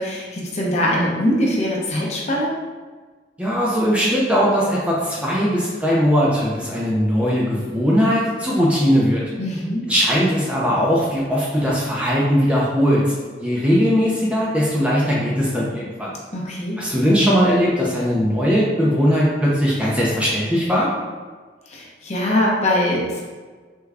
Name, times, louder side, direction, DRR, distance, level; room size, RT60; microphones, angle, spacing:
voice 1, 0.0-2.5 9.4-9.9 16.3-16.8 21.7-23.2, left 1 dB, 35° left, -3 dB, 0.6 m, -22 dB
voice 2, 3.4-9.2 9.9-13.0 13.4-16.1 16.8-20.9, equal, 5° right, -5 dB, 0.4 m, -19 dB
3.5 x 2.2 x 3.3 m, 1.4 s
head